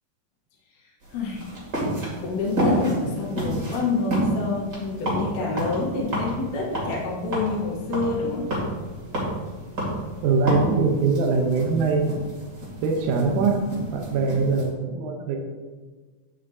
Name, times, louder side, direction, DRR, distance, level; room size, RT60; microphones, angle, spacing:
sound 1, 1.0-14.7, right 1 dB, 30° right, 2.8 m, -30 dB
voice 1, 1.1-1.5 2.2-8.5 14.1-14.3, left 3 dB, 80° left, -3 dB, 2.8 m, -27 dB
voice 2, 10.2-12.1 12.8-13.6 13.9-15.4, right 4 dB, 75° right, 1 dB, 2.3 m, -22 dB
9.2 x 8.7 x 2.7 m, 1.4 s
omnidirectional pair, 3.6 m